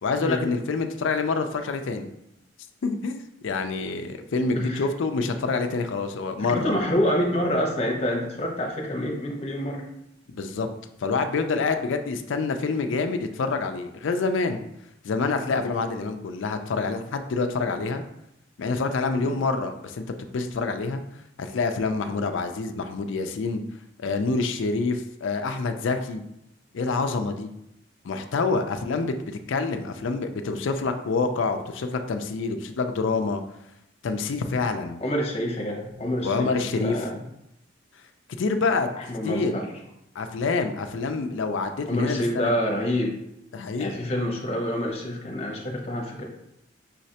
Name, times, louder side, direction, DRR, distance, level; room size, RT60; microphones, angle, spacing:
voice 1, 0.0-2.1 2.8-6.8 10.3-10.7 11.0-14.6 15.0-18.0 18.6-21.0 21.4-23.6 24.0-26.2 26.7-27.5 28.0-33.4 34.0-35.0 36.2-37.1 38.4-38.9 39.2-39.5 40.2-42.5 43.5-44.1, left 4 dB, 75° left, 7 dB, 0.4 m, -27 dB
voice 2, 6.5-9.8 19.2-19.4 35.0-36.5 36.8-37.2 39.1-39.6 41.9-43.2 43.8-46.3, equal, 30° left, -1 dB, 0.8 m, -27 dB
5.6 x 3.1 x 2.8 m, 0.82 s
head